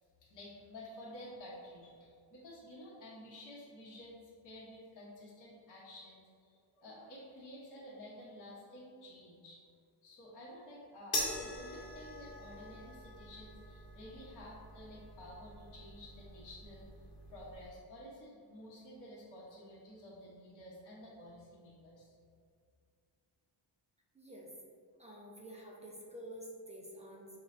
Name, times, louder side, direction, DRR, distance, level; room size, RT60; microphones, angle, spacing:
voice 1, 0.2-9.6 10.0-16.9 17.3-22.1, left 1 dB, 40° left, -8 dB, 0.9 m, -52 dB
sound 1, 11.1-17.7, left 1 dB, 25° left, 1.1 m, -43 dB
voice 2, 24.1-24.5 25.0-27.3, right 1 dB, 15° right, -3 dB, 0.5 m, -49 dB
4.7 x 3.1 x 2.5 m, 2.3 s
cardioid pair, 135°, 47 cm